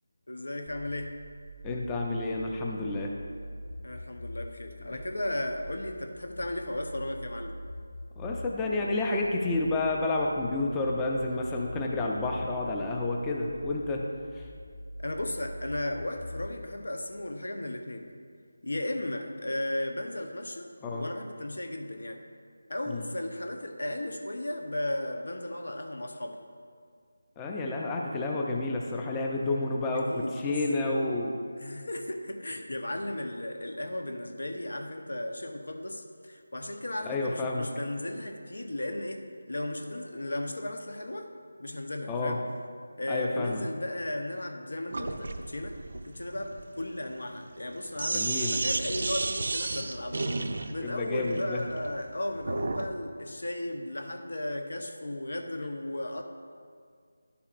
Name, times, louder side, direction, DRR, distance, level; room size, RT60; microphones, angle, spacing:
voice 1, 0.3-1.2 3.8-7.6 15.0-18.1 18.6-22.2 22.7-26.4 29.9-30.6 31.6-41.3 41.6-42.4 43.0-56.2, left 1 dB, 80° left, 5 dB, 0.8 m, -35 dB
sound 1, 1.1-16.7, equal, 35° left, 1.2 m, -43 dB
voice 2, 1.6-3.1 8.2-14.0 14.4-14.5 20.8-21.0 22.9-23.0 27.4-31.3 37.0-37.7 42.1-42.4 43.1-43.6 48.1-48.6 50.8-51.6, left 2 dB, 10° left, -1 dB, 0.4 m, -30 dB
Sink (filling or washing), 44.9-52.9, right 3 dB, 55° right, 0.5 m, -33 dB
11.0 x 7.0 x 2.5 m, 2.1 s
figure-of-eight pair, 170°, 0 cm